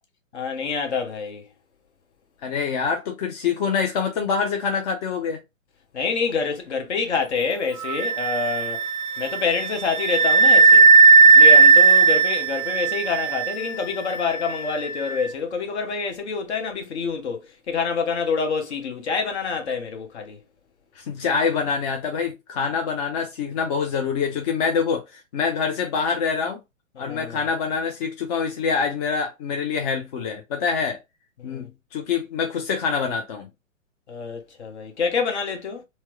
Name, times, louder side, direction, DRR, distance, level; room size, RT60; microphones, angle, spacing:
voice 1, 0.3-1.5 5.9-8.9 9.2-10.9 11.2-20.4 27.0-27.4 31.4-31.7 34.1-35.8, left 5 dB, 55° left, 1.3 m, -27 dB
voice 2, 2.4-5.4 21.0-26.6 27.0-31.0 31.4-33.5, left 5 dB, 30° left, 0.7 m, -25 dB
Wind instrument woodwind instrument, 7.8-15.2, right 4 dB, 25° right, 0.6 m, -16 dB
4.5 x 2.1 x 3.1 m
figure-of-eight pair, 120°, 39 cm